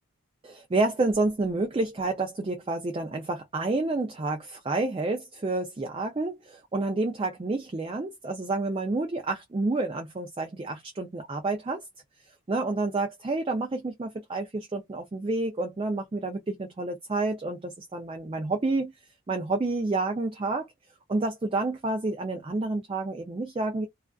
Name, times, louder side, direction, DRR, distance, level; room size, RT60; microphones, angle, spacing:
voice 1, 0.4-11.8 12.5-18.9 19.3-20.7 21.1-23.9, right 2 dB, 25° right, 0.3 m, -29 dB
2.4 x 2.3 x 2.3 m
head